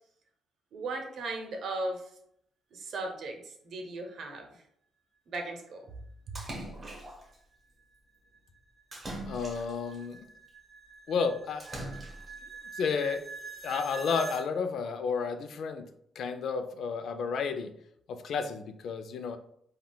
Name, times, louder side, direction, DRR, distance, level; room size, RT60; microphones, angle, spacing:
voice 1, 0.7-2.1 2.7-4.6 5.3-5.9 6.3-6.4, right 2 dB, 65° right, 3 dB, 0.6 m, -37 dB
Splash splatter, 6.4-7.4 8.9-10.0 11.6-12.4, right 1 dB, 25° right, 0.8 m, -41 dB
sound 1, 7.3-14.5, right 4 dB, 15° left, 0.8 m, -46 dB
voice 2, 9.3-10.3 11.1-11.7 12.7-13.2 13.6-15.9 16.2-17.7 18.1-19.4, left 5 dB, 65° left, 9 dB, 0.3 m, -32 dB
3.6 x 2.2 x 2.2 m, 0.70 s
cardioid pair, 90°, 0 cm